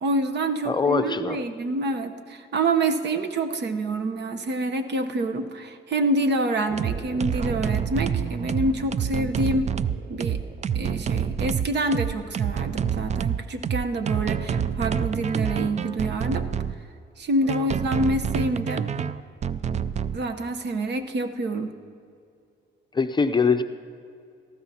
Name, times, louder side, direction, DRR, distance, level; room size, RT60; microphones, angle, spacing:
voice 1, 0.0-9.7 10.1-10.4 10.7-16.5 17.2-18.8 20.1-21.7, right 2 dB, 60° right, 7 dB, 1.0 m, -27 dB
voice 2, 0.7-1.4 22.9-23.6, left 5 dB, 20° left, 7 dB, 0.6 m, -22 dB
sound 1, 6.7-16.7 17.5-20.2, right 8 dB, 35° right, 0.4 m, -27 dB
19.0 x 14.5 x 2.9 m, 2.4 s
cardioid pair, 90°, 20 cm